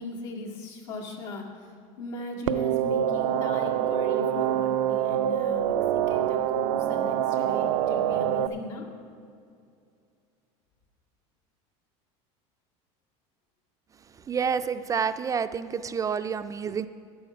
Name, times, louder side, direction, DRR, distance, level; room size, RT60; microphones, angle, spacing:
voice 1, 0.0-1.7 2.0-8.9, left 3 dB, 85° left, -2 dB, 2.1 m, -38 dB
sound 1, 2.5-8.5, right 11 dB, 90° right, 0.5 m, -25 dB
voice 2, 14.3-16.9, right 6 dB, 20° right, 10 dB, 0.3 m, -28 dB
12.5 x 9.9 x 5.1 m, 2.4 s
supercardioid pair, 125°, 15 cm